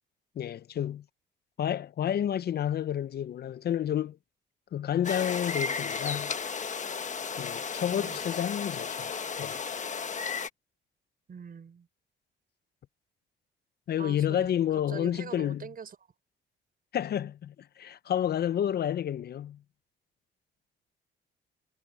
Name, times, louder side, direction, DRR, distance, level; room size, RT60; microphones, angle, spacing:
voice 1, 0.4-1.0 1.6-4.2 4.7-6.3 7.4-9.1 9.4-9.6 13.9-15.7 16.9-19.6, left 10 dB, 55° left, 0.6 m, -30 dB
sound 1, 5.0-10.5, left 5 dB, 40° left, 1.4 m, -34 dB
voice 2, 11.3-11.9 14.0-14.5 14.9-16.0, right 6 dB, 45° right, 6.1 m, -43 dB
cardioid pair, 90°, 20 cm